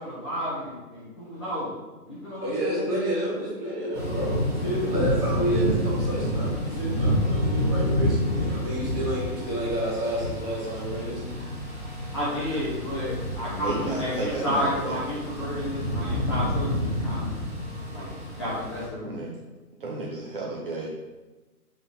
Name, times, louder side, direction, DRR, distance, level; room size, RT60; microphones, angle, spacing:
voice 1, 0.0-1.7 2.1-2.8 12.1-17.3 17.9-19.1, equal, 20° left, -8 dB, 0.9 m, -31 dB
voice 2, 2.4-11.3, right 1 dB, 15° right, -9 dB, 2.0 m, -29 dB
Thunder / Rain, 3.9-18.9, equal, ahead, 0.9 m, -29 dB
voice 3, 13.5-15.2 19.0-19.3 19.8-20.9, right 2 dB, 35° right, -4 dB, 0.8 m, -32 dB
7.7 x 3.8 x 4.1 m, 1.2 s
hypercardioid pair, 175°, 46 cm